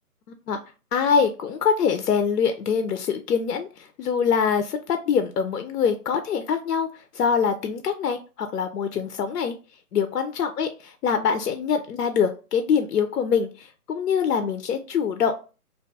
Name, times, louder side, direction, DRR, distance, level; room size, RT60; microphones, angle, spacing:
voice 1, 0.9-9.5 9.9-15.5, left 6 dB, 85° left, 7 dB, 0.5 m, -24 dB
2.6 x 2.2 x 2.6 m, 0.33 s
hypercardioid pair, 175°, 46 cm